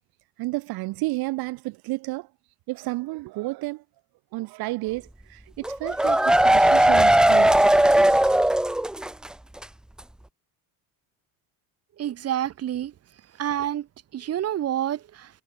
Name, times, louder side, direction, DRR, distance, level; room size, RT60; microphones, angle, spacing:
voice 1, 0.4-2.3 2.7-3.8 4.3-7.5, right 21 dB, 60° right, 4.6 m, -31 dB
sound 1, 5.6-9.3 9.6-9.7 10.0-10.1, right 1 dB, ahead, 0.4 m, -18 dB
voice 2, 12.0-12.9 13.4-13.9 14.1-15.3, right 11 dB, 35° right, 7.6 m, -28 dB
cardioid pair, 175°, 42 cm